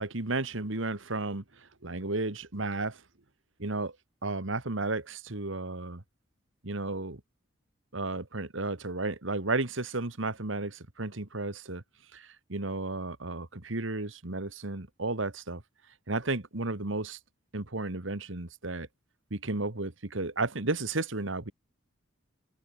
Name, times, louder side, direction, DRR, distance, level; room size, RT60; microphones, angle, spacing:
voice 1, 0.0-1.4 1.8-3.0 3.6-3.9 4.2-6.0 6.6-7.2 7.9-11.8 12.1-15.6 16.1-17.2 17.5-18.9 19.3-21.5, right 2 dB, 70° right, 2.0 m, -33 dB
head